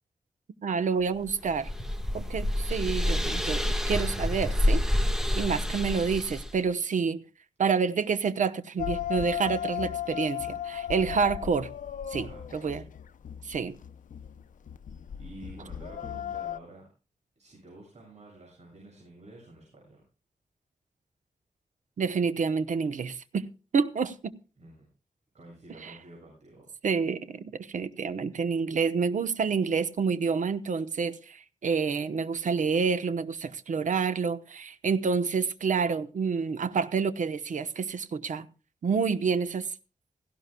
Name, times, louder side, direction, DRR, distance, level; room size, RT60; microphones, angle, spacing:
voice 1, 0.6-1.7 2.1-4.8 5.3-7.2 7.6-11.7 12.1-12.8 13.5-13.8 22.0-23.5 23.7-24.3 25.8-25.9 26.8-38.5 38.8-39.7, right 5 dB, 75° right, 1.0 m, -28 dB
sound 1, 1.2-6.6, left 1 dB, 5° right, 1.5 m, -28 dB
sound 2, 8.8-16.6, left 10 dB, 90° left, 0.6 m, -36 dB
voice 2, 12.1-12.8 15.2-16.9 17.4-20.0 24.6-24.9 25.3-26.6, right 1 dB, 60° right, 7.9 m, -50 dB
17.5 x 16.0 x 2.3 m
wide cardioid pair, 110°, 13 cm